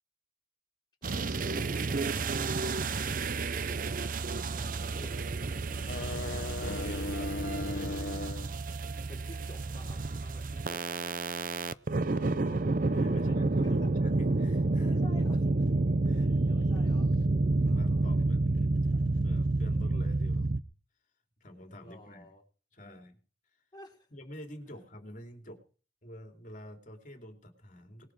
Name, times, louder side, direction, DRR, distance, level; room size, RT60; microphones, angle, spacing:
voice 1, 1.0-2.9 4.5-5.3 5.8-6.9 9.1-11.0 13.1-13.9 14.8-15.4 16.1-17.1 17.6-18.6 21.8-22.4 23.7-24.1, left 1 dB, 25° left, -1 dB, 4.3 m, -52 dB
sound 1, 1.0-20.6, right 2 dB, 45° right, 0.6 m, -29 dB
sound 2, 5.7-8.5, left 3 dB, 70° left, 1.0 m, -37 dB
voice 2, 6.1-8.2 12.1-15.2 16.0-16.3 17.2-18.8 19.2-20.5 21.4-22.3 22.7-23.2 24.1-25.6 26.0-28.1, left 1 dB, 45° left, 5 dB, 3.0 m, -48 dB
20.0 x 11.0 x 4.8 m, 0.38 s
head